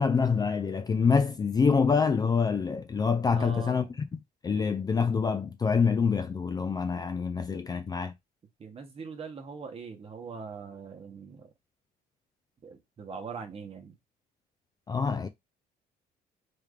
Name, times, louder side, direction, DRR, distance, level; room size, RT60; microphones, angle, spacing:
voice 1, 0.0-3.9 4.1-8.1 14.9-15.3, left 5 dB, 25° left, 0.3 m, -26 dB
voice 2, 3.3-3.9 8.6-11.5 12.6-13.9, right 5 dB, 35° right, 0.9 m, -42 dB
3.4 x 3.2 x 2.4 m
cardioid pair, 110°, 17 cm